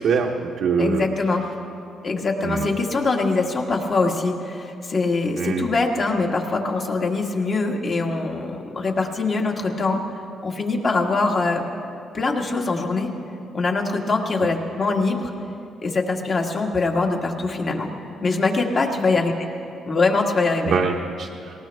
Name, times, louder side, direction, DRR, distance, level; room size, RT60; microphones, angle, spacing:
voice 1, 0.0-1.1 2.4-2.7 5.4-5.7 20.6-21.3, right 5 dB, 75° right, -1 dB, 0.9 m, -23 dB
voice 2, 0.8-1.4 2.0-10.0 10.4-11.6 12.1-13.1 13.5-15.3 15.8-17.9 18.2-19.3 19.8-20.7, left 3 dB, 45° left, 1 dB, 1.7 m, -23 dB
19.0 x 19.0 x 3.5 m, 2.6 s
cardioid pair, 90°, 0 cm